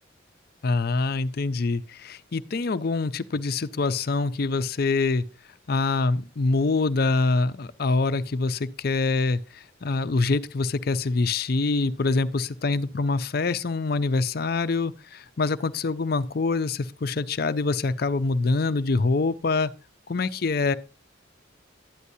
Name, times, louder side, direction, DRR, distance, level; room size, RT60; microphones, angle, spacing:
voice 1, 0.6-5.2 5.7-19.7 20.1-20.7, left 3 dB, 50° left, 0.5 m, -25 dB
12.0 x 9.7 x 2.7 m
head